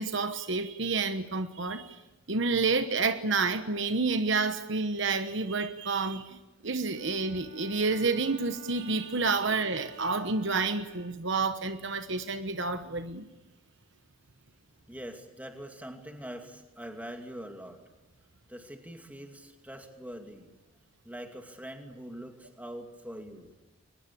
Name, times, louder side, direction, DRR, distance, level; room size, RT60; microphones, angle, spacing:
voice 1, 0.0-2.0 2.3-13.3, right 4 dB, 55° right, 9 dB, 1.1 m, -29 dB
Bowed string instrument, 7.0-11.6, right 3 dB, 90° right, 2.6 m, -52 dB
voice 2, 14.9-17.8 18.5-20.5 21.0-23.5, equal, 5° right, 4 dB, 2.5 m, -43 dB
23.5 x 20.5 x 8.6 m, 1.1 s
head